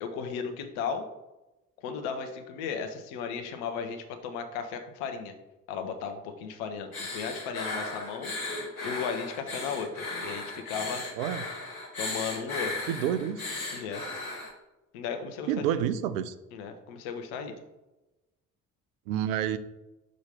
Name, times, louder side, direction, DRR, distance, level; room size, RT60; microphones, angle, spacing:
voice 1, 0.0-1.1 1.8-5.3 5.7-8.3 8.8-11.1 12.0-12.8 13.7-14.0 14.9-15.6 16.5-17.6, left 6 dB, 65° left, 6 dB, 0.9 m, -35 dB
sound 1, 6.9-14.5, left 2 dB, 85° left, 1.3 m, -36 dB
voice 2, 12.9-13.5 14.1-14.2 15.5-16.3 19.1-19.6, right 10 dB, 70° right, 13 dB, 0.6 m, -29 dB
6.2 x 3.0 x 5.7 m, 1.0 s
figure-of-eight pair, 45°, 42 cm